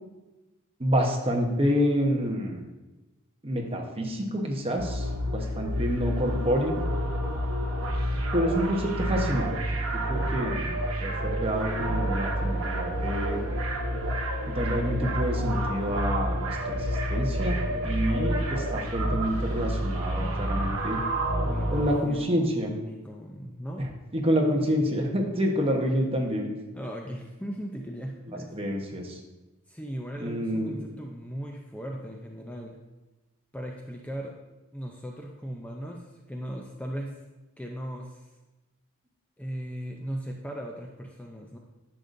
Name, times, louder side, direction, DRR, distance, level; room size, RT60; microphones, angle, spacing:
voice 1, 0.8-2.7 3.4-6.8 8.3-9.5 9.9-10.7 11.0-13.4 14.5-21.0 21.7-22.8 23.8-26.5 28.3-29.2 30.2-30.8, equal, 25° right, 1 dB, 1.0 m, -28 dB
sound 1, 4.8-22.0, equal, 85° right, 1.1 m, -29 dB
voice 2, 21.4-23.9 26.7-28.7 29.7-32.8 33.5-34.3 34.7-37.2 37.6-38.3 39.4-41.6, equal, 5° left, 0 dB, 0.5 m, -38 dB
10.0 x 6.7 x 2.6 m, 1.1 s
head